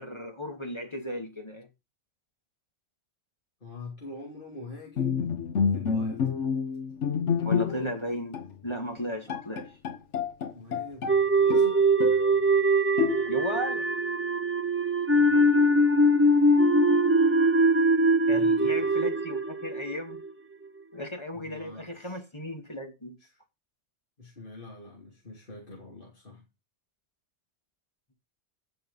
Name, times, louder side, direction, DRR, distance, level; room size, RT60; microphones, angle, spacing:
voice 1, 0.0-1.7 7.4-9.7 13.3-13.9 18.3-20.2 20.9-23.2, equal, 25° left, 2.1 m, -35 dB
voice 2, 3.6-5.2 5.7-6.3 10.5-11.8 15.1-15.5 18.3-19.0 21.3-22.2 23.2-23.4 24.2-26.4, left 3 dB, 45° left, 2.9 m, -44 dB
Bowed string instrument, 5.0-8.0 8.3-8.5 9.0-9.1 9.3-11.2 11.5-12.3 13.0-13.6, left 6 dB, 85° left, 1.3 m, -29 dB
sound 1, 11.1-20.3, right 1 dB, 15° right, 0.5 m, -22 dB
16.0 x 5.5 x 5.5 m
omnidirectional pair, 1.2 m